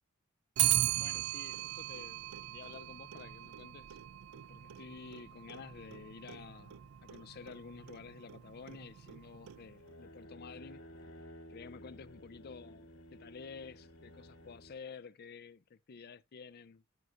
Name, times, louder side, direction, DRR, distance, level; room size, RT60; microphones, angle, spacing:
Clock, 0.6-9.9, right 14 dB, 90° right, 0.4 m, -38 dB
voice 1, 1.0-4.0 4.4-10.8 11.5-16.8, left 5 dB, 50° left, 0.5 m, -51 dB
sound 1, 9.5-14.8, equal, 80° left, 2.1 m, -54 dB
9.2 x 7.6 x 2.5 m
head